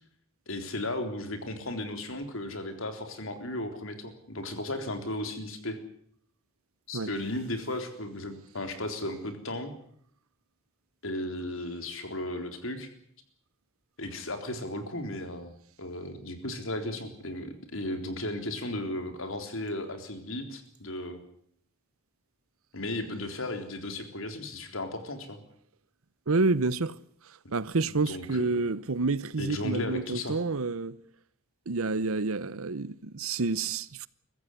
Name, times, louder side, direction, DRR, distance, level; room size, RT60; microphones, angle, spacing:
voice 1, 0.5-5.8 6.9-9.7 11.0-12.9 14.0-15.5 15.8-21.2 22.7-25.4 28.1-28.4 29.4-30.4, left 1 dB, 70° left, 3.8 m, -35 dB
voice 2, 26.3-27.0 27.5-31.0 31.7-34.1, right 3 dB, 85° right, 0.9 m, -28 dB
23.5 x 14.5 x 9.8 m
head